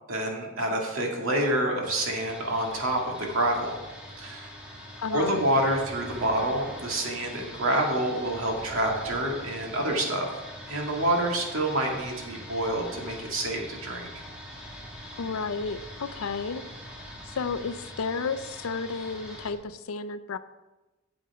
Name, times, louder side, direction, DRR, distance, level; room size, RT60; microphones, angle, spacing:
voice 1, 0.1-3.8 4.2-4.5 5.1-10.3 10.7-14.1, right 1 dB, 70° right, 0 dB, 2.1 m, -27 dB
sound 1, 1.8-19.5, equal, 5° right, 1.9 m, -43 dB
voice 2, 5.0-5.4 15.2-16.6 17.3-20.4, left 5 dB, 80° left, 13 dB, 0.5 m, -32 dB
8.8 x 7.4 x 4.8 m, 1.1 s
head